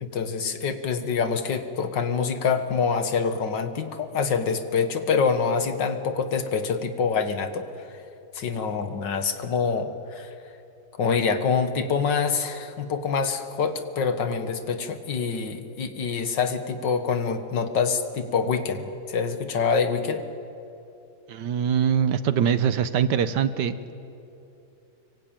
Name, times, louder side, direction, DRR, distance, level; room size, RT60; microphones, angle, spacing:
voice 1, 0.0-7.7 8.3-10.3 11.0-20.2, left 5 dB, 80° left, 8 dB, 2.1 m, -26 dB
voice 2, 21.3-23.9, right 8 dB, 75° right, 13 dB, 1.6 m, -23 dB
25.0 x 23.5 x 9.0 m, 2.8 s
omnidirectional pair, 1.9 m